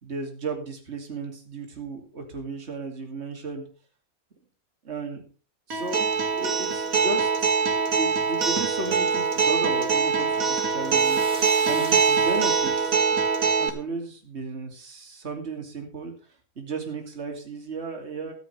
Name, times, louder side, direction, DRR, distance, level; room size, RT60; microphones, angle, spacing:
voice 1, 0.0-3.7 4.8-5.2 5.7-16.1 16.6-18.3, right 3 dB, 45° right, 3 dB, 2.8 m, -35 dB
Acoustic guitar, 5.7-13.7, right 5 dB, 70° right, 2.3 m, -23 dB
sound 1, 8.4-13.0, equal, 5° right, 3.7 m, -44 dB
14.0 x 13.5 x 3.3 m, 0.37 s
omnidirectional pair, 1.5 m